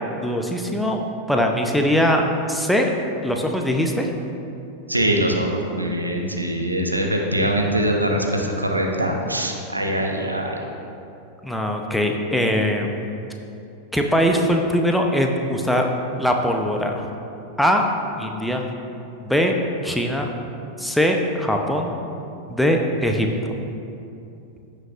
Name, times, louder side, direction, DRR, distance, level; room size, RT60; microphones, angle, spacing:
voice 1, 0.2-1.0 1.3-2.2 2.5-2.9 3.2-4.1 11.4-13.0 13.9-15.9 16.2-17.1 17.6-17.9 18.2-18.6 19.2-19.5 19.8-20.3 20.8-21.9 22.5-23.5, equal, ahead, 2 dB, 0.8 m, -21 dB
voice 2, 4.9-10.6, right 1 dB, 85° right, 1 dB, 1.0 m, -23 dB
15.5 x 6.6 x 2.5 m, 2.7 s
figure-of-eight pair, 90°, 0 cm